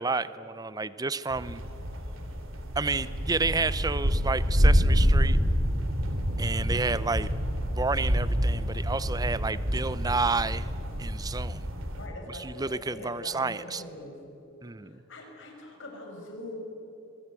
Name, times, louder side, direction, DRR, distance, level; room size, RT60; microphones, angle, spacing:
voice 1, 0.0-1.6 2.8-5.4 6.4-7.3 7.8-11.7 12.3-13.8 14.6-15.0, right 3 dB, 20° right, 16 dB, 0.6 m, -30 dB
sound 1, 1.3-12.1, equal, 70° right, 2.8 m, -27 dB
voice 2, 6.6-7.0 11.9-14.2 14.8-16.6, left 2 dB, 60° left, 2 dB, 5.8 m, -43 dB
26.0 x 23.0 x 8.4 m, 3.0 s
head